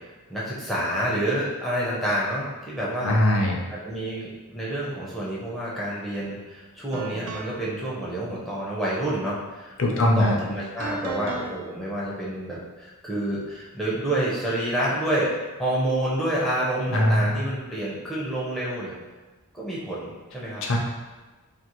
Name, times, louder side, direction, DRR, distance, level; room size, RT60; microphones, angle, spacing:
voice 1, 0.3-3.2 3.7-18.9 19.5-20.6, right 1 dB, ahead, -7 dB, 0.5 m, -28 dB
voice 2, 3.0-3.6 9.8-10.4 16.9-17.3 20.6-20.8, left 1 dB, 60° left, 0 dB, 0.5 m, -20 dB
sound 1, 6.1-6.3 6.9-7.7 10.8-11.5, right 4 dB, 75° right, 0.4 m, -35 dB
2.5 x 2.4 x 2.9 m, 1.2 s
head